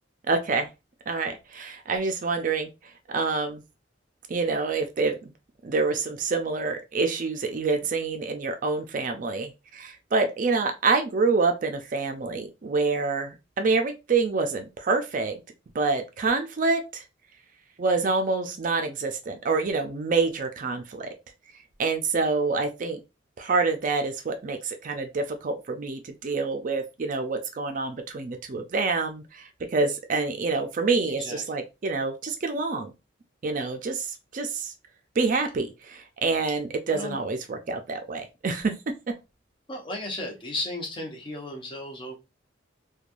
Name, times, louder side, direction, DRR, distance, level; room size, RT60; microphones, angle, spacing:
voice 1, 0.3-0.7 1.1-2.7 3.1-3.6 4.3-5.3 5.6-15.3 15.7-17.0 17.8-21.1 21.8-23.0 23.4-32.9 33.4-34.7 35.2-38.7, right 4 dB, 45° right, 0.4 m, -27 dB
voice 2, 31.0-31.4 36.9-37.1 39.7-42.2, left 2 dB, 25° left, 0.7 m, -34 dB
3.1 x 2.2 x 2.5 m
head